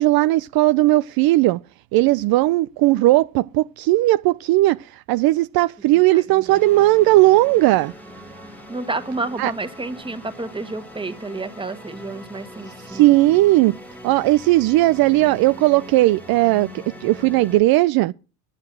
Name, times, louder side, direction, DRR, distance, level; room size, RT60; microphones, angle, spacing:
voice 1, 0.0-1.6 1.9-7.9 9.4-9.5 12.9-13.7 14.0-16.7 17.0-18.1, right 18 dB, 60° right, 0.5 m, -17 dB
voice 2, 5.9-6.5 8.7-13.1, right 3 dB, 10° right, 1.6 m, -30 dB
sound 1, 6.5-17.6, left 1 dB, 5° left, 2.1 m, -41 dB
10.0 x 7.8 x 7.4 m
supercardioid pair, 100°, 43 cm